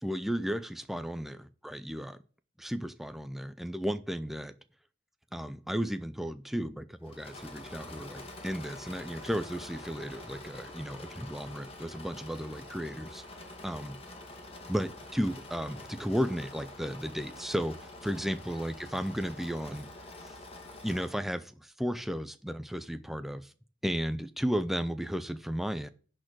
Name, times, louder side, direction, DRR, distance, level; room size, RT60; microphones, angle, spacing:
voice 1, 0.0-2.2 2.6-4.5 5.3-13.2 13.6-14.0 14.7-19.9 20.2-20.4 20.8-23.5 23.8-25.9, equal, ahead, 0.4 m, -34 dB
Engine / Mechanisms, 7.0-21.3, left 2 dB, 30° left, 2.0 m, -46 dB
10.5 x 4.4 x 6.2 m
head